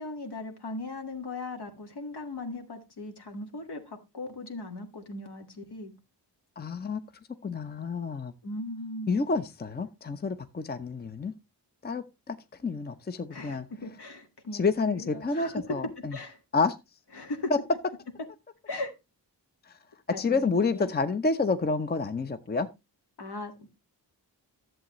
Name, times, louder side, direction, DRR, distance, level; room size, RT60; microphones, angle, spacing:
voice 1, 0.0-5.9 8.4-9.2 13.3-16.4 17.1-17.5 18.7-18.9 20.1-20.9 23.2-23.7, left 2 dB, 70° left, 1.9 m, -38 dB
voice 2, 6.6-7.0 7.4-8.3 9.1-11.3 11.8-12.4 12.6-13.7 14.5-16.2 16.5-16.8 17.5-17.6 20.2-22.7, left 4 dB, 25° left, 0.6 m, -29 dB
11.0 x 7.7 x 3.0 m
cardioid pair, 75°, 42 cm